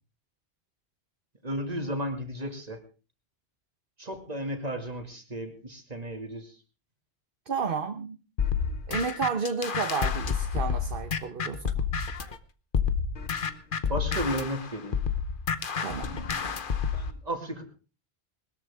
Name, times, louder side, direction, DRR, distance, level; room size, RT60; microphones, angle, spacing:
voice 1, 1.4-2.8 4.0-6.6 13.9-15.0 16.9-17.6, equal, 35° right, 5 dB, 2.4 m, -34 dB
voice 2, 7.5-8.2 8.9-11.8 15.8-16.2, right 5 dB, 55° right, 6 dB, 1.3 m, -31 dB
sound 1, 8.4-12.4 12.7-17.1, left 6 dB, 50° left, 1.1 m, -29 dB
20.5 x 13.5 x 3.6 m, 0.35 s
omnidirectional pair, 1.1 m